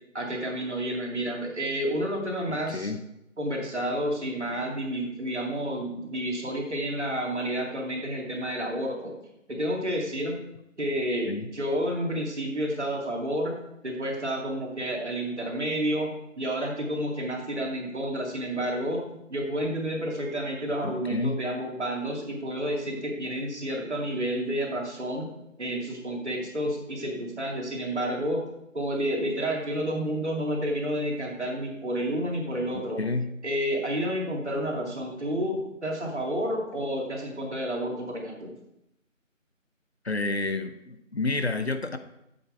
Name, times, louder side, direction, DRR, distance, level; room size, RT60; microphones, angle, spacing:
voice 1, 0.1-2.9 3.4-9.1 9.5-10.4 10.8-13.6 13.8-25.3 25.6-28.4 28.7-33.0 33.4-38.5, equal, 60° right, 0 dB, 2.4 m, -30 dB
voice 2, 2.5-3.0 11.3-11.5 20.8-21.4 32.7-33.3 40.0-42.0, left 3 dB, 55° left, 10 dB, 0.7 m, -30 dB
8.0 x 7.5 x 4.5 m, 0.83 s
figure-of-eight pair, 170°, 38 cm